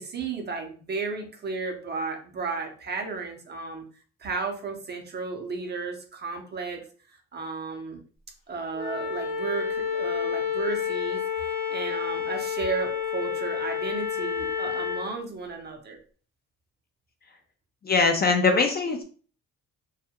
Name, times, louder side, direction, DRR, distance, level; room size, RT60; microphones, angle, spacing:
voice 1, 0.0-3.8 4.2-6.8 7.3-8.0 8.5-11.2 11.7-16.0, right 4 dB, 35° right, 3 dB, 0.6 m, -33 dB
Wind instrument woodwind instrument, 8.7-15.1, left 7 dB, 75° left, 0.7 m, -29 dB
voice 2, 17.9-19.0, left 4 dB, 35° left, 4 dB, 0.4 m, -21 dB
2.3 x 2.1 x 2.8 m, 0.41 s
cardioid pair, 90°, 30 cm